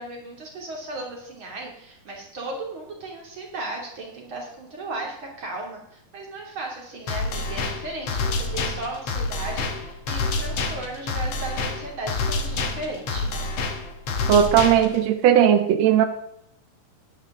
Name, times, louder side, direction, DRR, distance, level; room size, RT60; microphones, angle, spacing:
voice 1, 0.0-13.5, right 2 dB, 35° right, 0 dB, 3.4 m, -36 dB
sound 1, 7.1-15.1, left 3 dB, 55° left, 1.9 m, -28 dB
voice 2, 14.3-16.0, right 9 dB, 85° right, 8 dB, 1.5 m, -17 dB
13.0 x 10.5 x 3.8 m, 0.78 s
omnidirectional pair, 4.2 m